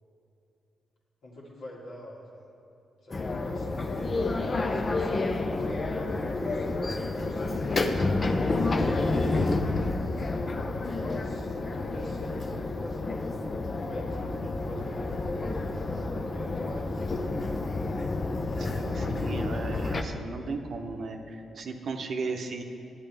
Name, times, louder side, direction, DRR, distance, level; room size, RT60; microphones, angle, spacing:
voice 1, 1.2-2.5 3.0-7.7 8.5-9.6 10.2-13.2 13.8-17.5, equal, 70° left, -4 dB, 2.0 m, -43 dB
sound 1, 3.1-20.0, left 3 dB, 45° left, 0.6 m, -29 dB
voice 2, 18.6-22.6, right 4 dB, 65° right, 4 dB, 0.7 m, -36 dB
11.0 x 8.3 x 3.4 m, 2.8 s
hypercardioid pair, 45°, 0 cm